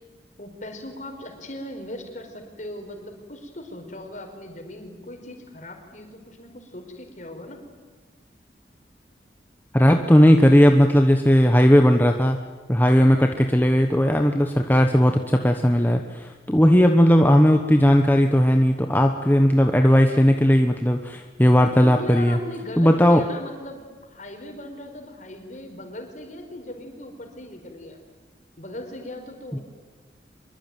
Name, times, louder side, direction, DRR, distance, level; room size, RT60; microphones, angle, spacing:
voice 1, 0.4-7.6 21.8-23.8 24.1-28.0 28.6-29.6, left 1 dB, 45° left, 4 dB, 5.0 m, -38 dB
voice 2, 9.7-12.4 12.7-22.4 22.8-23.2 29.5-29.6, equal, 10° left, 4 dB, 1.1 m, -17 dB
25.0 x 23.0 x 9.3 m, 1.4 s
head